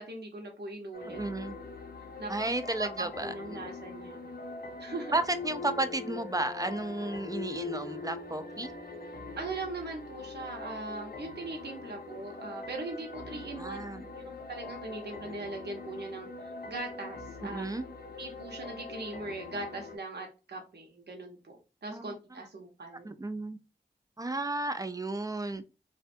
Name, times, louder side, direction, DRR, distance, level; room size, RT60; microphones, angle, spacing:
voice 1, 0.0-1.2 2.2-2.5 2.8-4.2 4.8-5.2 9.4-13.8 14.2-16.3 16.7-17.7 18.2-23.1, right 2 dB, 70° right, 0.8 m, -40 dB
sound 1, 0.9-20.0, left 4 dB, 60° left, 0.6 m, -43 dB
voice 2, 1.1-1.6 2.3-3.6 5.1-8.7 13.6-14.1 17.4-17.8 21.9-22.1 23.0-23.6 24.2-25.6, right 2 dB, 20° right, 0.3 m, -33 dB
2.5 x 2.2 x 2.5 m
cardioid pair, 40°, 18 cm